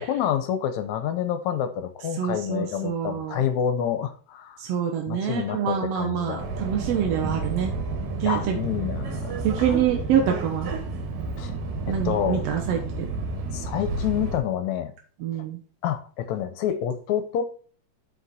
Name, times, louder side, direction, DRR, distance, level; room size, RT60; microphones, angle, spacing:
voice 1, 0.0-4.6 5.1-6.5 8.3-9.7 11.4-11.6 11.9-12.4 13.5-14.9 15.8-17.4, left 9 dB, 70° left, 1.8 m, -28 dB
voice 2, 2.2-3.4 4.6-7.7 8.2-8.5 9.4-10.7 11.9-13.0 15.2-15.6, right 9 dB, 65° right, 1.7 m, -26 dB
Subway metro underground, 6.4-14.4, right 3 dB, 85° right, 3.0 m, -31 dB
8.9 x 4.9 x 4.1 m
omnidirectional pair, 3.8 m